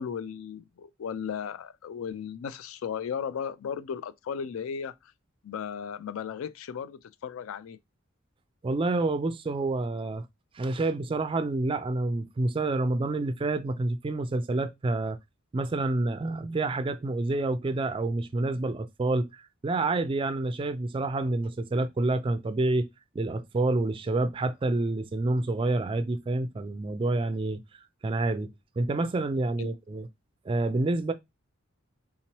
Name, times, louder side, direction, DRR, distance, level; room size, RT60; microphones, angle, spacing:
voice 1, 0.0-5.0 5.4-7.8 29.6-29.8, left 7 dB, 75° left, 0.3 m, -35 dB
voice 2, 8.6-10.3 10.5-15.2 15.5-22.9 23.1-30.1 30.5-31.1, right 2 dB, 25° right, 0.3 m, -28 dB
3.7 x 3.0 x 2.9 m
head